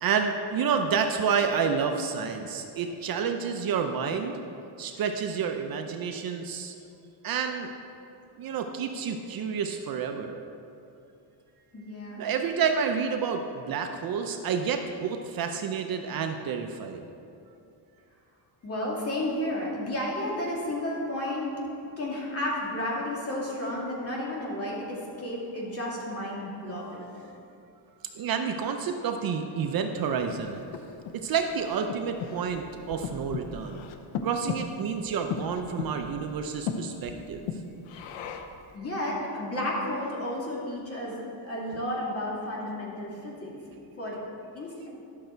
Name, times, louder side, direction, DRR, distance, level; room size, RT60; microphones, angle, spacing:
voice 1, 0.0-4.4 4.8-6.7 7.2-7.7 8.4-10.3 12.2-17.0 28.2-30.6 31.2-33.8 34.2-37.5, right 6 dB, 50° right, 5 dB, 0.6 m, -29 dB
voice 2, 11.7-12.2 18.6-21.5 22.0-27.0 38.7-43.5 44.0-44.2 44.5-44.9, left 1 dB, 30° left, -4 dB, 2.3 m, -32 dB
Breathing, 30.2-38.7, left 6 dB, 75° left, 0.8 m, -37 dB
11.5 x 6.5 x 4.5 m, 2.6 s
cardioid pair, 135°, 46 cm